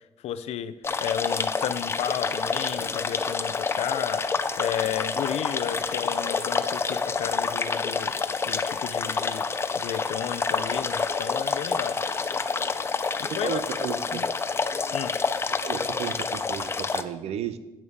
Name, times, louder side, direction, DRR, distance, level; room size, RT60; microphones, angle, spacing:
voice 1, 0.2-4.3 4.6-8.1 8.4-9.5 9.8-12.0 13.2-13.6 14.1-14.3 14.9-15.2, left 10 dB, 80° left, 13 dB, 0.6 m, -33 dB
sound 1, 0.8-17.0, left 4 dB, 25° left, 0.4 m, -28 dB
voice 2, 13.2-14.3 15.5-17.6, right 9 dB, 75° right, 13 dB, 0.7 m, -34 dB
8.7 x 7.0 x 5.1 m, 1.0 s
cardioid pair, 125°, 11 cm